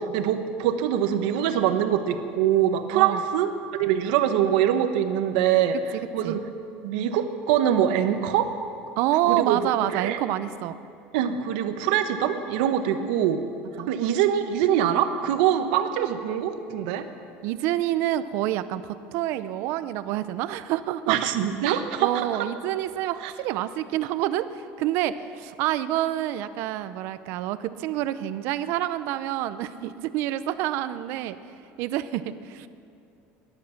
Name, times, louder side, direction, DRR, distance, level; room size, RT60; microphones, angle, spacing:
voice 1, 0.0-5.8 6.1-6.4 6.8-8.5 9.3-9.6 9.9-10.2 11.1-13.4 13.9-17.0 21.1-22.5 23.2-23.3, right 10 dB, 85° right, 8 dB, 1.1 m, -24 dB
voice 2, 9.0-10.8 13.8-13.9 17.4-21.2 22.0-31.4 31.8-32.7, right 13 dB, 60° right, 13 dB, 0.6 m, -27 dB
18.5 x 11.5 x 5.9 m, 2.5 s
cardioid pair, 155°, 5 cm